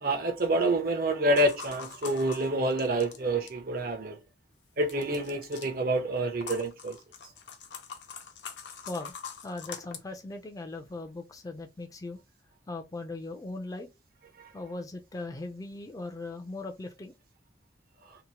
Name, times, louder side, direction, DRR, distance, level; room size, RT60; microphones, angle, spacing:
voice 1, 0.0-4.2 4.8-7.0, right 1 dB, 55° right, 0.8 m, -27 dB
sound 1, 1.3-3.6 4.9-5.7 6.4-10.0, left 6 dB, 80° left, 0.6 m, -43 dB
voice 2, 9.4-12.2 12.7-13.9 14.5-17.1, left 2 dB, 20° left, 0.4 m, -39 dB
2.9 x 2.1 x 2.7 m
head